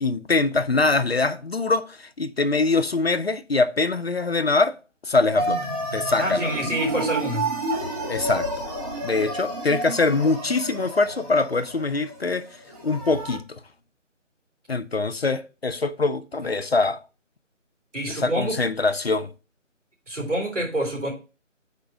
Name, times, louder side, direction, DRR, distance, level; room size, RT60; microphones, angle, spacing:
voice 1, 0.0-4.8 5.0-5.6 5.9-6.5 8.1-8.5 9.0-12.5 12.8-13.6 14.7-17.0 18.1-19.3, left 3 dB, 55° left, 0.5 m, -23 dB
sound 1, 5.4-13.4, right 1 dB, 30° right, 1.4 m, -30 dB
voice 2, 6.2-7.5 17.9-18.6 20.1-21.1, right 1 dB, 70° right, 3.7 m, -27 dB
5.2 x 4.4 x 5.1 m
figure-of-eight pair, 165°, 38 cm